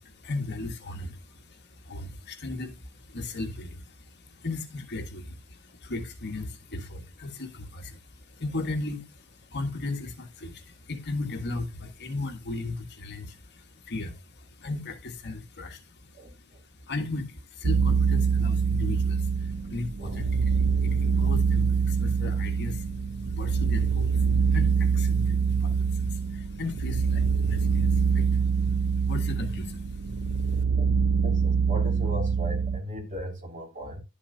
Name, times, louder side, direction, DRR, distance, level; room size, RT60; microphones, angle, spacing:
voice 1, 0.0-16.5 16.8-22.9 23.2-30.5, left 2 dB, 50° left, 1.5 m, -37 dB
voice 2, 16.1-16.6 20.0-20.4 30.5-30.9 31.2-34.0, equal, 35° right, 2.9 m, -38 dB
sound 1, 17.6-32.8, right 5 dB, 60° right, 0.5 m, -25 dB
11.5 x 7.1 x 2.7 m
head